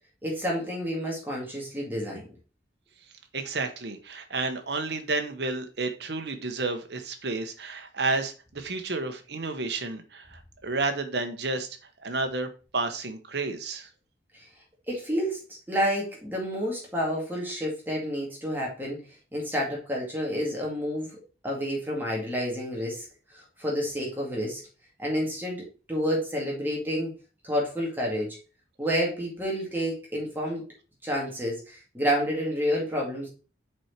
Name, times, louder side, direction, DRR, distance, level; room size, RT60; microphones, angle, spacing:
voice 1, 0.2-2.4 14.3-14.4 14.9-15.4 15.7-19.0 19.3-21.2 21.4-23.1 23.3-24.6 25.0-27.1 27.4-28.4 28.8-30.6 31.0-33.3, equal, 10° right, -3 dB, 2.1 m, -29 dB
voice 2, 3.3-11.7 12.0-13.9, right 3 dB, 65° right, 6 dB, 1.0 m, -31 dB
6.2 x 4.5 x 4.4 m, 0.34 s
head